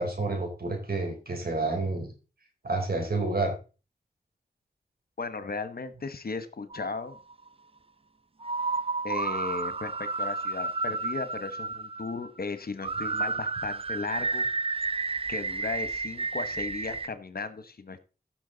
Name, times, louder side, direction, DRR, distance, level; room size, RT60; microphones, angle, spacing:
voice 1, 0.0-2.1 2.6-3.6, right 2 dB, 70° right, 4 dB, 3.9 m, -29 dB
voice 2, 5.2-7.2 9.0-14.4 15.3-18.1, left 4 dB, 65° left, 12 dB, 1.2 m, -36 dB
sound 1, 6.7-7.5 8.4-12.4 12.8-17.1, right 3 dB, 35° right, 0.5 m, -31 dB
15.0 x 6.2 x 4.0 m, 0.33 s
cardioid pair, 50°, 17 cm